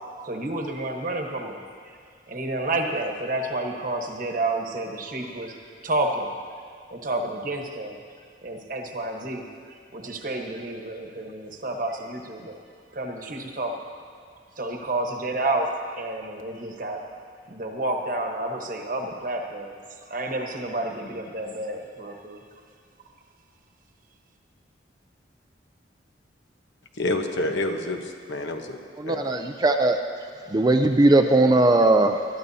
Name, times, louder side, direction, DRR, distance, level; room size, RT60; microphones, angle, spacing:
voice 1, 0.2-1.6 1.9-2.0 2.3-5.5 5.8-6.3 6.9-8.0 8.4-9.5 9.9-12.6 12.9-13.7 14.6-15.7 16.0-17.0 17.5-19.7 20.1-22.4, right 2 dB, 45° right, 2 dB, 1.2 m, -30 dB
voice 2, 26.9-28.8 29.0-29.2, left 2 dB, 75° left, 4 dB, 1.1 m, -28 dB
voice 3, 29.0-30.0 30.5-32.3, right 2 dB, 20° right, 5 dB, 0.4 m, -19 dB
21.0 x 12.5 x 2.8 m, 2.2 s
head